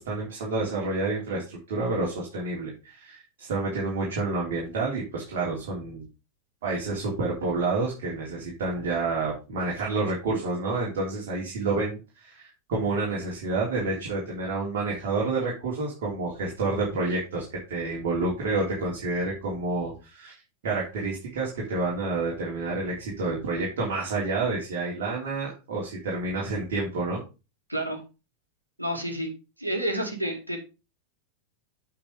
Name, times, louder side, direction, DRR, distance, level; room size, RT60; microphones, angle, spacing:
voice 1, 0.0-6.1 6.6-20.3 20.6-27.2, right 3 dB, 55° right, -4 dB, 3.4 m, -29 dB
voice 2, 27.7-28.0 28.8-29.3 29.6-30.6, right 1 dB, 85° right, 3 dB, 2.3 m, -29 dB
8.7 x 5.2 x 5.1 m, 0.30 s
figure-of-eight pair, 90°, 0 cm